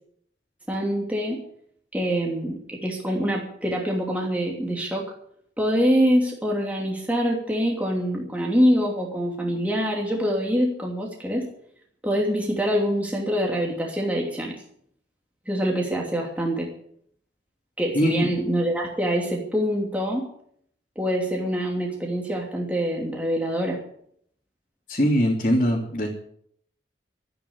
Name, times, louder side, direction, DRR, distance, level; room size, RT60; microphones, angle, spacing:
voice 1, 0.7-1.4 1.9-5.1 5.6-11.5 12.0-14.6 15.5-16.7 17.8-20.3 21.0-23.8, equal, 10° right, -1 dB, 2.8 m, -25 dB
voice 2, 17.9-18.3 24.9-26.1, equal, 45° left, -4 dB, 3.2 m, -22 dB
13.5 x 10.0 x 8.7 m, 0.67 s
head